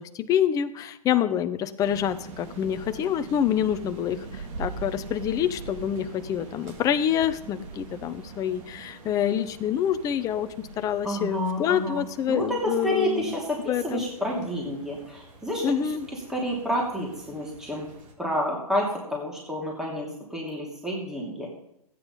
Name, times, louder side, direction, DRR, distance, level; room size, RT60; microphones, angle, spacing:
voice 1, 0.0-13.3 13.7-14.0 15.6-16.1, left 9 dB, 15° left, 11 dB, 0.7 m, -27 dB
sound 1, 1.8-18.1, right 4 dB, 50° right, 3.3 m, -43 dB
voice 2, 11.0-17.9 18.2-21.5, equal, ahead, -3 dB, 2.8 m, -30 dB
14.5 x 9.3 x 5.5 m, 0.78 s
hypercardioid pair, 135°, 20 cm